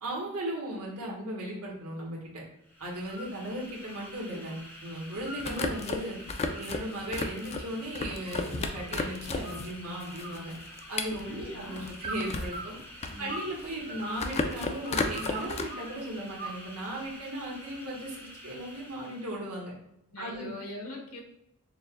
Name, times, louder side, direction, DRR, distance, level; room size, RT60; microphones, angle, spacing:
voice 1, 0.0-2.4 2.8-4.5 4.8-6.2 6.5-10.5 10.9-12.8 13.2-19.7 20.2-20.6, right 1 dB, 85° right, -3 dB, 1.3 m, -37 dB
sound 1, 2.6-19.5, equal, 10° left, 0.7 m, -49 dB
sound 2, 2.9-3.3 3.7-4.6 4.9-5.8 6.2-9.0 9.4-9.9 10.2-11.2 12.0-13.5 13.8-15.9 16.4-17.1, right 2 dB, 25° right, 0.8 m, -42 dB
sound 3, 5.1-9.7 10.0-12.6 12.9-13.8 14.1-15.6, left 3 dB, 30° left, 0.3 m, -34 dB
voice 2, 11.2-12.0 13.1-13.3 20.1-21.2, equal, 70° left, 0 dB, 1.1 m, -42 dB
6.6 x 2.3 x 2.2 m, 0.81 s
head